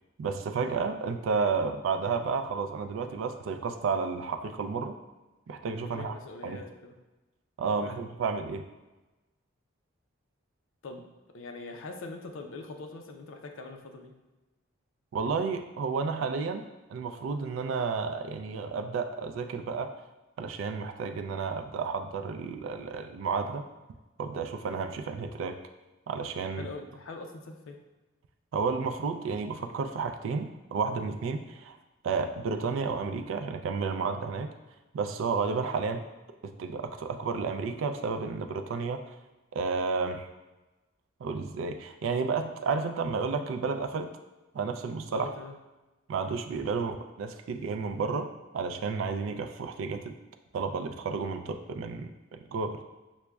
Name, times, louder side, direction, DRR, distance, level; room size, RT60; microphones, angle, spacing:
voice 1, 0.2-5.0 5.5-6.1 6.4-6.6 7.6-8.6 15.1-16.6 16.9-20.0 20.4-23.6 24.2-25.6 26.1-26.7 28.5-31.8 32.0-34.5 34.9-36.0 36.4-39.1 39.5-40.3 41.2-44.1 44.5-45.3 46.1-48.3 48.5-50.1 50.5-52.8, right 5 dB, 75° right, 7 dB, 0.3 m, -31 dB
voice 2, 5.8-6.9 7.8-8.0 10.8-11.1 11.3-14.1 26.6-27.8 45.1-45.5, left 3 dB, 70° left, 3 dB, 0.4 m, -42 dB
5.9 x 2.1 x 2.2 m, 1.1 s
head